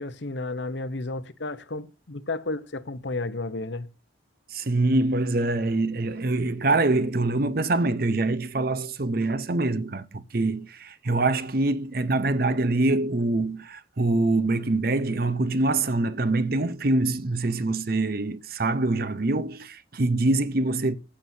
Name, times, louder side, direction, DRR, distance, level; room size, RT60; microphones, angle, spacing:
voice 1, 0.0-3.9, left 2 dB, 75° left, 0.9 m, -32 dB
voice 2, 4.5-21.0, right 2 dB, 55° right, 0.8 m, -24 dB
15.5 x 7.3 x 2.7 m
head